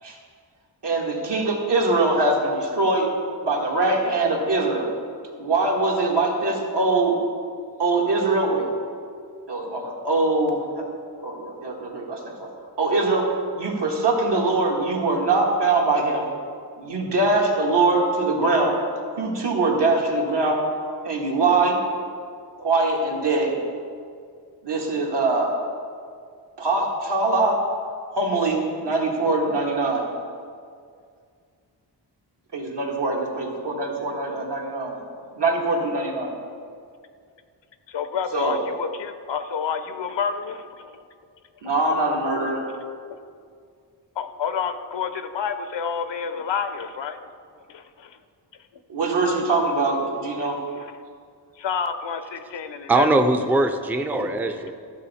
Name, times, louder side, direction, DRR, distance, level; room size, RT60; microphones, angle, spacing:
voice 1, 0.8-3.1 3.4-4.9 5.4-7.2 7.8-8.7 9.5-10.9 11.2-12.5 12.8-13.3 13.6-16.2 16.8-18.8 19.2-20.6 21.0-21.8 22.6-23.6 24.6-25.6 26.6-27.6 28.1-30.1 32.5-35.0 35.4-36.4 38.3-38.6 41.6-42.6 48.9-50.6 54.1-54.3, right 2 dB, 70° right, -1 dB, 1.8 m, -22 dB
voice 2, 37.9-41.0 44.2-47.2 47.7-48.2 50.4-50.9 51.6-53.1, left 6 dB, 80° left, 10 dB, 0.7 m, -29 dB
voice 3, 52.9-54.7, right 2 dB, 5° right, 6 dB, 0.4 m, -21 dB
14.0 x 7.0 x 4.2 m, 2.2 s
wide cardioid pair, 150°, 43 cm